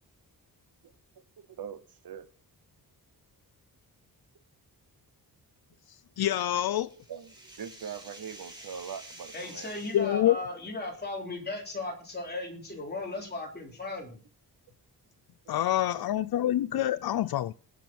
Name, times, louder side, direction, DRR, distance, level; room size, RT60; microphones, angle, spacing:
voice 1, 1.4-2.3 7.1-9.8 15.4-15.5, right 7 dB, 65° right, 1.0 m, -42 dB
voice 2, 6.2-6.9 9.9-10.4 15.5-17.5, left 12 dB, 70° left, 0.5 m, -26 dB
sound 1, 6.3-10.1, right 1 dB, 10° right, 3.4 m, -49 dB
voice 3, 9.3-14.2, left 2 dB, 25° left, 3.5 m, -36 dB
19.0 x 7.0 x 4.5 m
wide cardioid pair, 165°, 39 cm